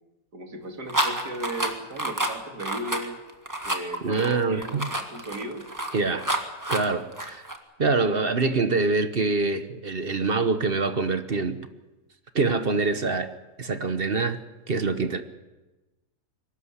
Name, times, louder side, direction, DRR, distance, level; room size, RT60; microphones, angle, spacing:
voice 1, 0.3-3.2 3.6-5.6, right 1 dB, 75° right, 3 dB, 3.1 m, -36 dB
sound 1, 0.9-7.6, right 1 dB, 10° right, 1.7 m, -29 dB
voice 2, 4.0-4.9 5.9-6.3 6.7-7.5 7.8-11.6 12.3-13.3 13.6-14.4 14.7-15.2, right 3 dB, 40° right, 10 dB, 1.1 m, -25 dB
23.0 x 13.0 x 9.8 m, 1.1 s
omnidirectional pair, 1.7 m